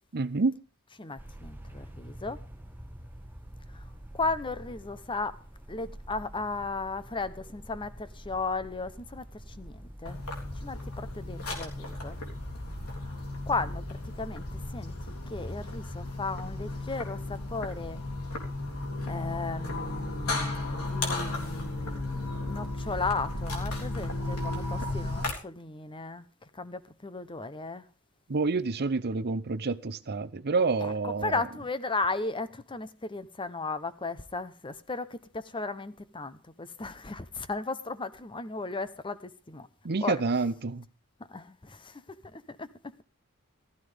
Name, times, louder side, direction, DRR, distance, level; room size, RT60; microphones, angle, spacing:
voice 1, 0.1-0.5 28.3-31.4 39.8-40.8, right 4 dB, 45° right, 0.7 m, -28 dB
voice 2, 1.0-2.4 4.1-5.4 5.7-10.2 10.6-12.2 13.5-13.8 14.2-14.9 15.3-18.0 19.1-26.2 26.6-27.8 30.8-39.7 40.0-40.2 41.3-41.9 42.3-42.7, left 3 dB, 20° left, 0.9 m, -35 dB
sound 1, 1.2-14.7, right 1 dB, 10° right, 1.4 m, -47 dB
sound 2, 10.1-25.3, left 2 dB, 75° left, 3.6 m, -34 dB
15.5 x 14.0 x 3.5 m
head